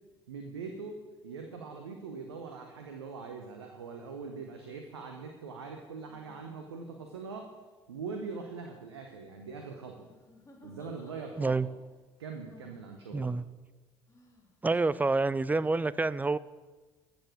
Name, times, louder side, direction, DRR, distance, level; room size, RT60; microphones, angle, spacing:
voice 1, 0.3-7.5 7.9-10.1 10.6-11.6 12.2-13.3, right 4 dB, 85° right, 4 dB, 0.9 m, -42 dB
sound 1, 4.5-4.7 6.0-6.9 8.0-8.6 10.0-11.7 12.4-12.9 14.1-14.5, left 2 dB, 20° left, 3.2 m, -59 dB
voice 2, 13.1-13.4 14.6-16.4, right 3 dB, 10° right, 18 dB, 0.4 m, -28 dB
14.0 x 7.1 x 6.0 m, 1.3 s
figure-of-eight pair, 55°, 14 cm